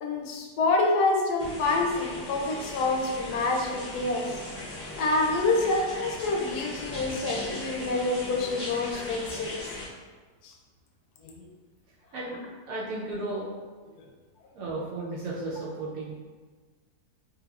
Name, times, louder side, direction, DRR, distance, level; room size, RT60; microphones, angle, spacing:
voice 1, 0.0-4.3 5.0-9.6 10.4-10.5 11.2-11.5 14.0-14.1, left 2 dB, 75° left, 1 dB, 1.0 m, -27 dB
sound 1, 1.4-9.8, left 2 dB, 20° left, 0.3 m, -38 dB
voice 2, 12.7-13.5 14.5-16.1, right 2 dB, 70° right, -6 dB, 0.9 m, -34 dB
3.3 x 3.3 x 2.3 m, 1.4 s
omnidirectional pair, 1.8 m